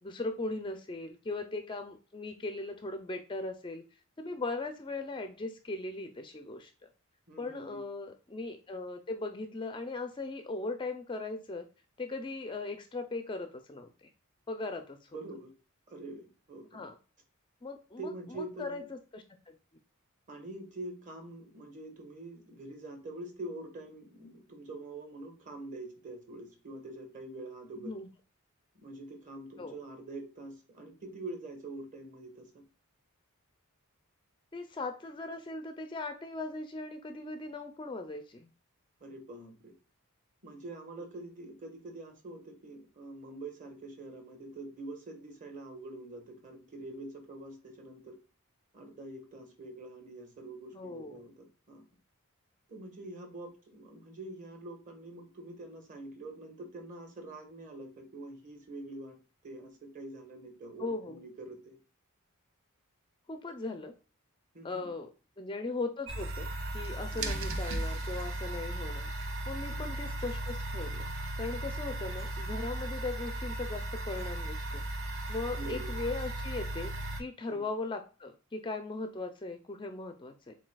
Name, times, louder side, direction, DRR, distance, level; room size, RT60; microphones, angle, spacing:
voice 1, 0.0-3.8 4.2-6.9 7.4-11.7 12.0-14.1 14.5-15.1 16.7-16.9 17.6-19.5 27.8-28.1 29.6-29.7 34.5-38.5 50.7-51.2 60.8-61.2 63.3-63.9 64.6-65.1 65.4-69.1 69.5-71.1 71.4-74.8 75.3-76.9 77.2-80.6, left 3 dB, 20° left, 7 dB, 0.4 m, -39 dB
voice 2, 7.3-7.8 15.1-15.5 15.9-16.8 18.0-18.8 20.3-27.9 28.7-32.6 39.0-39.7 40.4-48.1 48.7-51.8 52.7-59.1 59.4-61.8 64.5-64.9 67.1-67.4 69.7-70.0 71.7-71.9 75.5-75.9 77.5-77.6, right 2 dB, 35° right, 3 dB, 1.3 m, -45 dB
sound 1, 66.1-77.2, right 1 dB, 60° right, 0.8 m, -36 dB
7.2 x 2.7 x 2.2 m, 0.35 s
head